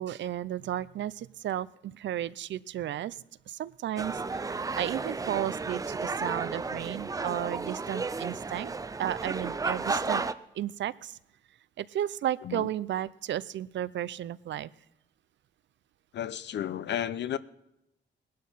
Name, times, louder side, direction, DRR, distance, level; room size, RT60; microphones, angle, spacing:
voice 1, 0.0-8.7 9.0-10.2 10.5-11.2 11.8-14.7, right 12 dB, 70° right, 0.5 m, -34 dB
sound 1, 4.0-10.3, right 4 dB, 20° right, 0.5 m, -33 dB
voice 2, 16.1-17.4, left 10 dB, 65° left, 0.7 m, -32 dB
19.0 x 11.5 x 5.6 m
wide cardioid pair, 135°, 19 cm